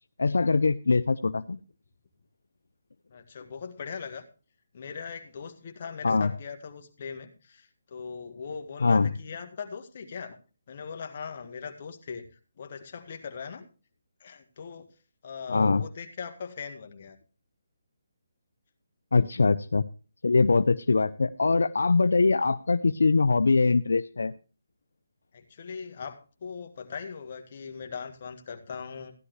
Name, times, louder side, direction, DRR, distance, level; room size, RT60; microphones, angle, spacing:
voice 1, 0.2-1.6 6.0-6.3 8.8-9.1 15.5-15.8 19.1-19.8 20.2-24.3, left 4 dB, 80° left, 12 dB, 0.5 m, -22 dB
voice 2, 3.1-4.3 4.7-10.4 10.7-12.3 12.6-13.7 14.2-14.9 15.2-17.2 25.3-29.1, left 6 dB, 45° left, 5 dB, 1.9 m, -40 dB
15.5 x 11.0 x 3.2 m, 0.35 s
hypercardioid pair, 155°, 0 cm